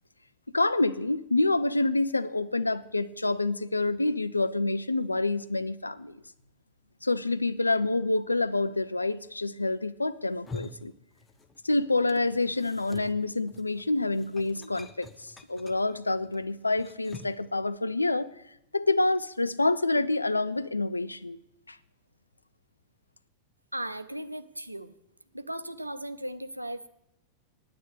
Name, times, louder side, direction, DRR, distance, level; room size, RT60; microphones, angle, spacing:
voice 1, 0.5-6.2 7.0-10.9 11.6-18.3 18.7-21.4 21.7-21.8, left 2 dB, 80° left, 12 dB, 0.5 m, -27 dB
sound 1, 10.2-11.7 11.9-17.5, left 3 dB, 15° left, 0.8 m, -47 dB
voice 2, 23.7-24.9 25.3-26.9, right 1 dB, 85° right, 13 dB, 0.6 m, -37 dB
9.5 x 9.1 x 8.4 m, 0.83 s
figure-of-eight pair, 90°, 0 cm